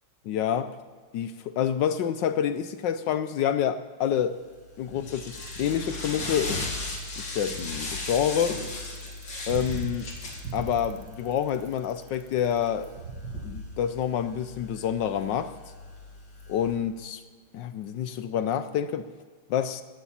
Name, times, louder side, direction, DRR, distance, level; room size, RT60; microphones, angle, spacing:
voice 1, 0.2-0.7 1.1-4.3 4.8-6.6 7.2-8.6 9.5-10.1 10.5-12.9 13.4-15.5 16.5-17.2 17.5-19.1 19.5-19.8, left 9 dB, 70° left, 12 dB, 1.1 m, -28 dB
sound 1, 4.3-16.8, left 2 dB, 55° left, 2.9 m, -38 dB
Bicycle, 5.3-13.4, right 6 dB, 60° right, 1.5 m, -40 dB
16.5 x 14.5 x 4.3 m, 1.5 s
omnidirectional pair, 2.4 m